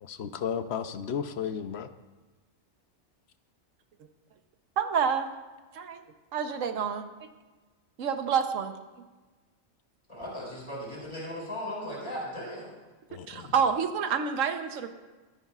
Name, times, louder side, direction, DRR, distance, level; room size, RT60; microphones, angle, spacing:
voice 1, 0.0-1.9 13.1-13.5, left 8 dB, 60° left, 0.8 m, -34 dB
voice 2, 4.8-5.3 5.7-6.0 6.3-7.1 8.0-8.7 13.3-14.9, right 7 dB, 80° right, 1.2 m, -28 dB
voice 3, 10.1-12.8, equal, 25° left, 4.9 m, -37 dB
24.0 x 9.5 x 2.4 m
omnidirectional pair, 1.3 m